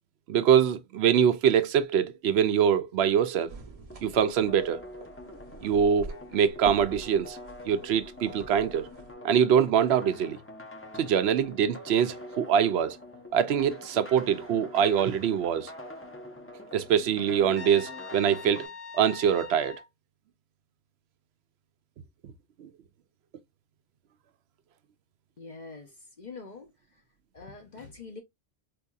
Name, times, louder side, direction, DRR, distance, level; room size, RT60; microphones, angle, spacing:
voice 1, 0.3-3.6 4.0-4.9 5.6-7.4 7.6-8.9 9.2-10.4 11.0-13.0 13.3-15.7 16.7-18.7 18.9-19.8 22.6-22.7, right 8 dB, 80° right, 0.8 m, -24 dB
sound 1, 3.5-9.1, right 3 dB, 35° right, 1.0 m, -46 dB
sound 2, 3.9-18.7, left 1 dB, 15° left, 0.7 m, -45 dB
Trumpet, 17.5-19.9, left 5 dB, 60° left, 1.7 m, -43 dB
voice 2, 25.4-27.0 27.3-28.2, left 4 dB, 45° left, 0.9 m, -45 dB
4.5 x 2.7 x 2.3 m
omnidirectional pair, 1.1 m